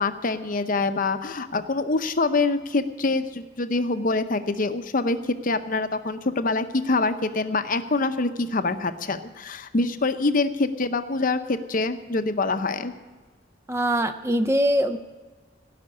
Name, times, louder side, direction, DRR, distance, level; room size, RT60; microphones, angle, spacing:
voice 1, 0.0-5.2 5.4-12.9, left 3 dB, 45° left, 9 dB, 0.8 m, -25 dB
voice 2, 13.7-15.0, equal, 15° right, 9 dB, 0.5 m, -22 dB
17.0 x 5.9 x 9.7 m, 1.4 s
head